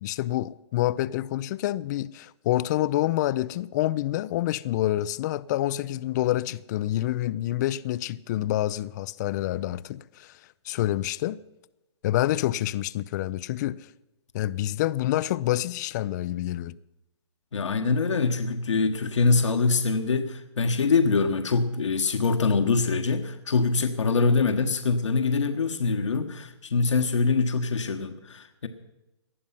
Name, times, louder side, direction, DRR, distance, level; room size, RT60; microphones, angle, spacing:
voice 1, 0.0-10.3 10.7-11.4 12.0-13.8 14.3-16.8, left 14 dB, 35° left, 0.5 m, -27 dB
voice 2, 17.5-28.7, left 4 dB, 75° left, 1.5 m, -24 dB
19.0 x 12.5 x 5.8 m
hypercardioid pair, 135°, 15 cm